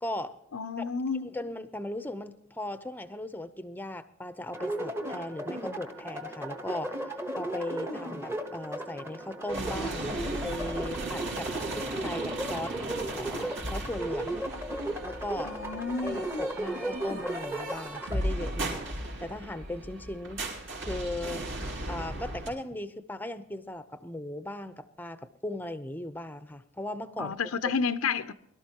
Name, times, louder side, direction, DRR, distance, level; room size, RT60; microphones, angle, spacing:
voice 1, 0.0-0.3 0.8-0.9 1.2-12.8 13.2-14.4 15.0-15.6 16.0-18.8 19.2-20.4 20.8-21.4 21.9-27.4, left 1 dB, 10° left, 0.7 m, -38 dB
voice 2, 0.5-1.4 15.4-16.2 27.2-28.3, left 5 dB, 85° left, 0.6 m, -30 dB
sound 1, 4.5-18.2, right 1 dB, 10° right, 1.1 m, -35 dB
sound 2, 9.5-22.5, right 1 dB, 60° right, 4.5 m, -37 dB
22.5 x 12.5 x 2.9 m
head